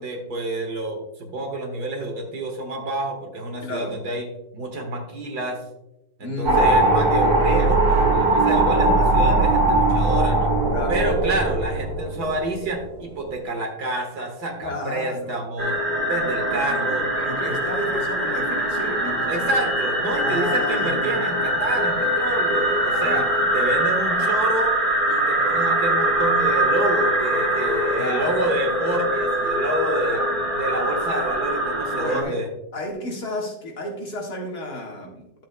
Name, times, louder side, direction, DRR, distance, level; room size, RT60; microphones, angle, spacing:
voice 1, 0.0-4.2 4.5-5.6 6.2-10.5 10.9-15.8 16.1-17.1 19.3-24.8 25.1-30.2 30.5-32.5, right 1 dB, 60° right, 3 dB, 2.0 m, -28 dB
voice 2, 3.6-4.0 6.2-6.7 10.7-11.0 14.6-15.4 17.2-19.5 20.2-21.2 22.9-24.4 28.0-28.5 30.1-30.3 31.9-32.4 32.7-35.3, left 1 dB, 55° left, -1 dB, 2.3 m, -32 dB
sound 1, 6.5-12.9, right 2 dB, 75° right, 2.7 m, -19 dB
sound 2, 15.6-32.2, right 1 dB, 25° right, 2.4 m, -23 dB
12.5 x 7.7 x 2.2 m, 0.87 s
omnidirectional pair, 2.0 m